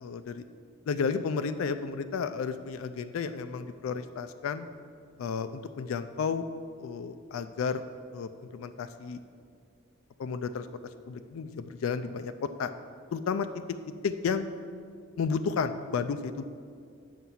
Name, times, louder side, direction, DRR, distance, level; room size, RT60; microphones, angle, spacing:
voice 1, 0.0-0.4 0.9-4.7 5.2-6.5 6.8-7.8 8.1-9.2 10.2-10.7 11.1-12.7 13.1-13.5 14.0-14.5 15.2-16.4, left 5 dB, 80° left, 10 dB, 0.3 m, -32 dB
7.5 x 5.6 x 5.5 m, 2.2 s
head